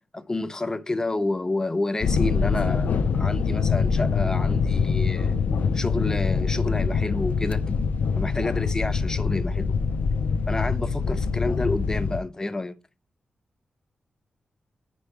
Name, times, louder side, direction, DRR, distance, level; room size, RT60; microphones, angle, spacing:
voice 1, 0.1-5.4 5.7-7.8 8.2-9.8 10.5-12.8, left 2 dB, 20° left, 0.7 m, -29 dB
sound 1, 2.0-12.2, left 5 dB, 75° left, 0.5 m, -24 dB
5.4 x 5.4 x 4.7 m
cardioid pair, 75°, 3 cm